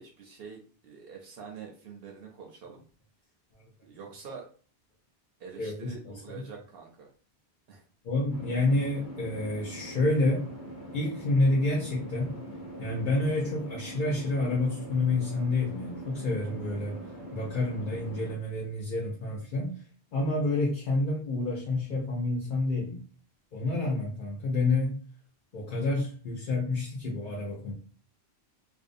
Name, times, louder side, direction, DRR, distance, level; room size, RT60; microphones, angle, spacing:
voice 1, 0.0-2.8 3.8-4.5 5.4-7.1 7.7-7.8, right 6 dB, 70° right, 1 dB, 0.8 m, -46 dB
voice 2, 5.6-6.4 8.0-10.4 10.9-12.3 12.8-17.0 17.3-19.8 20.1-23.0 23.5-25.0 25.5-27.7, left 2 dB, 55° left, -3 dB, 0.7 m, -28 dB
sound 1, 8.3-18.3, right 1 dB, 75° left, 1.1 m, -42 dB
2.6 x 2.1 x 2.5 m, 0.41 s
omnidirectional pair, 1.1 m